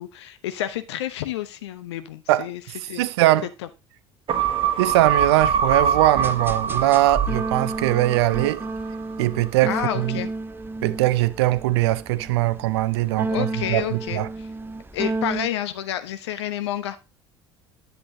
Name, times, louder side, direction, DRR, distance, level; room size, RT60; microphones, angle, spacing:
voice 1, 0.0-2.6 2.9-3.1 9.7-10.3 13.3-14.5 14.9-17.0, left 12 dB, 75° left, 0.8 m, -29 dB
voice 2, 2.9-3.5 4.8-8.6 9.2-10.2 10.8-14.3, right 16 dB, 70° right, 0.5 m, -21 dB
sound 1, 4.3-9.0 9.3-9.4, right 7 dB, 40° right, 1.4 m, -24 dB
sound 2, 6.2-15.5, right 2 dB, 15° right, 0.8 m, -32 dB
10.0 x 7.9 x 2.7 m
figure-of-eight pair, 60°, 14 cm